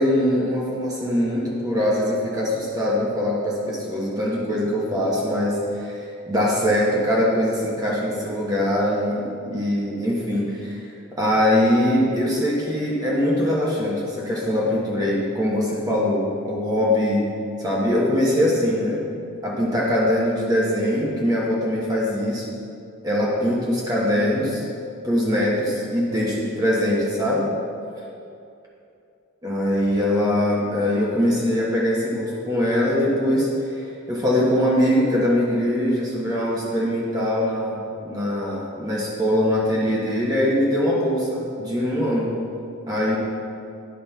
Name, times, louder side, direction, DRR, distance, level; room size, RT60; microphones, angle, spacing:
voice 1, 0.0-10.8 11.2-17.2 17.6-19.1 19.4-22.5 23.0-24.6 25.0-27.5 29.4-42.3 42.9-43.2, left 1 dB, 20° right, -6 dB, 1.2 m, -22 dB
10.5 x 4.3 x 5.8 m, 2.6 s
head